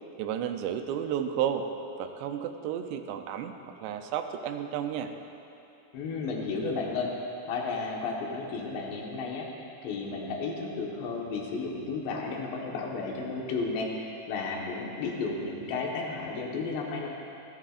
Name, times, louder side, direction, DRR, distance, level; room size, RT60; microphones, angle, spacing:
voice 1, 0.2-1.7 2.0-3.5 3.8-5.1, right 9 dB, 85° right, 7 dB, 2.8 m, -32 dB
voice 2, 5.9-7.1 7.5-17.1, left 4 dB, 80° left, -1 dB, 3.5 m, -33 dB
26.0 x 9.9 x 2.5 m, 2.8 s
omnidirectional pair, 5.0 m